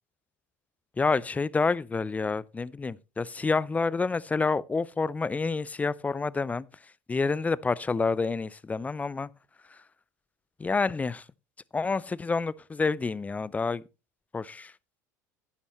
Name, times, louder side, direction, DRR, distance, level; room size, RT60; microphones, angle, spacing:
voice 1, 1.0-6.7 7.1-9.3 9.7-9.8 10.6-11.2 11.7-13.8 14.3-14.7, left 4 dB, 15° left, 0.4 m, -28 dB
11.5 x 9.7 x 3.0 m
hypercardioid pair, 75°, 9 cm